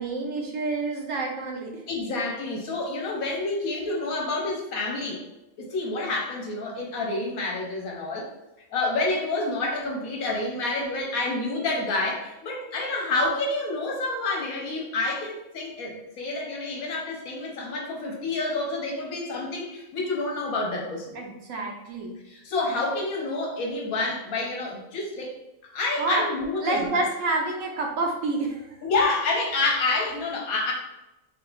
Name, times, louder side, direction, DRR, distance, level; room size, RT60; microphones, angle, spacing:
voice 1, 0.0-1.8 21.1-22.1 26.0-26.2 26.6-28.6, right 3 dB, 70° right, 0 dB, 1.1 m, -28 dB
voice 2, 1.9-5.2 5.6-8.3 8.7-21.1 22.3-25.3 25.7-27.1 28.8-30.7, left 2 dB, 85° left, -1 dB, 1.3 m, -28 dB
4.3 x 3.5 x 2.4 m, 0.95 s
omnidirectional pair, 1.5 m